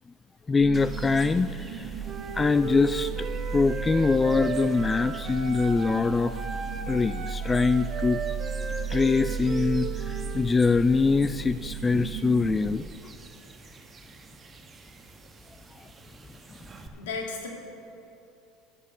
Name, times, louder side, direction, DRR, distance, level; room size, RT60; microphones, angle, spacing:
voice 1, 0.5-1.9 2.3-3.3 3.5-6.4 6.9-8.2 8.9-12.9, left 4 dB, 20° left, 13 dB, 0.3 m, -24 dB
sound 1, 0.6-12.7, right 6 dB, 70° right, 1.2 m, -35 dB
sound 2, 0.7-16.9, right 4 dB, 30° right, 1.2 m, -50 dB
Wind instrument woodwind instrument, 2.0-6.1 6.3-10.5, right 5 dB, 45° right, 1.0 m, -36 dB
voice 2, 17.0-17.5, left 4 dB, 75° left, 0 dB, 2.2 m, -33 dB
12.0 x 8.0 x 7.2 m, 2.8 s
hypercardioid pair, 75°, 0 cm